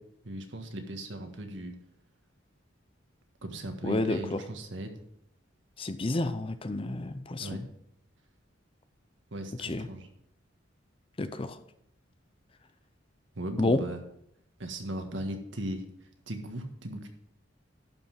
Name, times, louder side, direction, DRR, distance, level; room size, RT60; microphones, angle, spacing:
voice 1, 0.2-1.8 3.4-5.0 7.4-7.6 9.3-10.1 13.3-14.0 14.6-15.8 16.3-17.1, right 1 dB, 70° right, 5 dB, 1.6 m, -37 dB
voice 2, 3.8-4.4 5.8-7.7 9.6-9.9 11.2-11.6 13.6-13.8, left 2 dB, 30° left, 11 dB, 0.6 m, -30 dB
11.5 x 5.5 x 5.8 m, 0.74 s
head